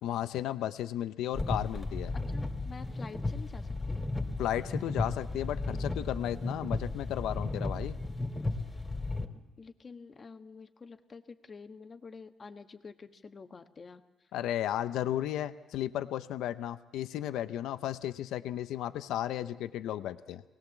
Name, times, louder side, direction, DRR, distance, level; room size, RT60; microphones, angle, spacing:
voice 1, 0.0-2.1 4.4-8.0 14.3-20.4, left 12 dB, 90° left, 12 dB, 0.7 m, -34 dB
sound 1, 1.3-9.3, left 2 dB, 20° left, 2.6 m, -34 dB
voice 2, 2.1-4.0 9.6-14.3, left 4 dB, 35° left, 7 dB, 1.3 m, -49 dB
24.5 x 19.0 x 7.3 m, 1.1 s
cardioid pair, 90°, 0 cm